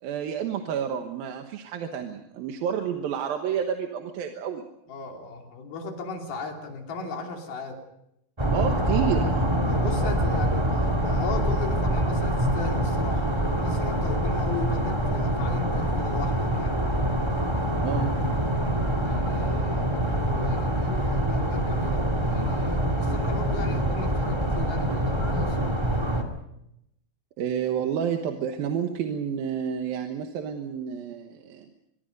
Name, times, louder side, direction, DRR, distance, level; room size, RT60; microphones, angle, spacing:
voice 1, 0.0-4.6 8.5-9.4 17.8-18.1 27.4-31.7, right 8 dB, 75° right, 5 dB, 3.0 m, -30 dB
voice 2, 4.9-7.8 9.7-16.8 19.0-25.8, left 4 dB, 75° left, 2 dB, 4.7 m, -37 dB
sound 1, 8.4-26.2, right 1 dB, 10° right, 1.6 m, -25 dB
24.5 x 23.0 x 5.3 m, 0.81 s
omnidirectional pair, 4.3 m